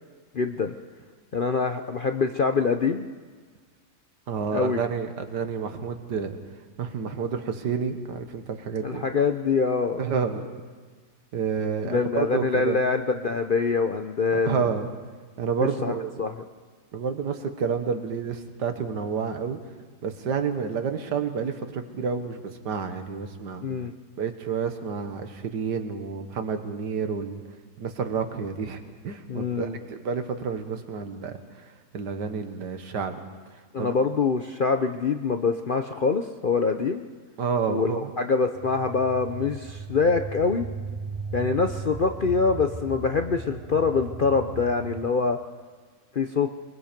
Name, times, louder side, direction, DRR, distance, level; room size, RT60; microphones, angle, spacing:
voice 1, 0.3-0.7 1.3-3.1 4.5-4.8 8.8-10.0 11.9-14.6 15.8-15.9 16.2-16.3 23.6-23.9 29.3-29.8 33.7-37.0 37.7-37.9 38.2-40.7 41.3-45.4 46.1-46.5, left 4 dB, 50° left, 6 dB, 0.6 m, -24 dB
voice 2, 4.3-9.0 10.0-10.4 11.3-12.8 14.3-14.9 15.4-16.2 16.9-19.6 20.0-23.7 24.2-27.4 27.8-33.2 33.5-34.0 37.4-38.1, right 6 dB, 85° right, 7 dB, 2.0 m, -30 dB
sound 1, 38.5-45.1, right 4 dB, 35° right, 0.5 m, -37 dB
23.0 x 23.0 x 5.2 m, 1.5 s
omnidirectional pair, 1.8 m